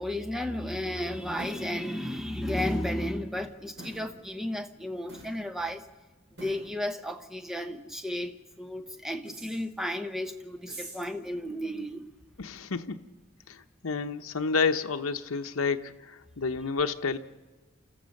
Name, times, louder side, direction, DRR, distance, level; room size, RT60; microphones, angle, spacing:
voice 1, 0.0-5.9 6.4-12.1, left 1 dB, ahead, 8 dB, 0.8 m, -33 dB
sound 1, 1.4-1.6 2.6-2.9 3.8-4.1 5.1-5.4 6.4-6.7 9.3-9.6 10.6-11.0, right 1 dB, 55° right, 7.9 m, -43 dB
voice 2, 12.4-13.1 13.5-17.2, left 5 dB, 80° left, 7 dB, 0.9 m, -30 dB
28.5 x 14.5 x 6.5 m, 1.3 s
head